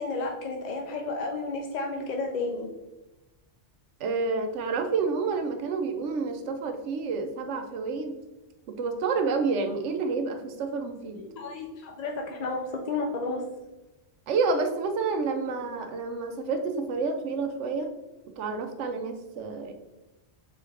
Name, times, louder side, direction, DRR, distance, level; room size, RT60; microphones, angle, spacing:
voice 1, 0.0-2.7 11.2-13.5, left 3 dB, 55° left, 1 dB, 0.5 m, -32 dB
voice 2, 4.0-8.2 8.7-11.2 14.3-17.9 18.4-19.7, right 4 dB, 85° right, 6 dB, 0.9 m, -29 dB
4.4 x 3.4 x 3.3 m, 1.0 s
omnidirectional pair, 1.2 m